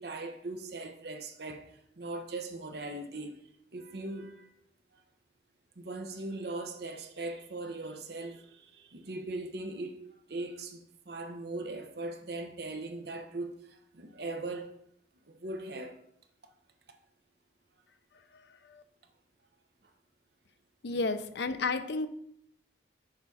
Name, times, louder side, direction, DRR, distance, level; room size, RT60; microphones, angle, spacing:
voice 1, 0.0-3.4 3.7-4.5 5.8-10.0 10.3-14.7 15.3-16.0 20.9-21.2, right 2 dB, 60° right, 0.8 m, -40 dB
voice 2, 20.8-22.1, left 3 dB, 70° left, 0.5 m, -32 dB
6.6 x 4.1 x 4.8 m
head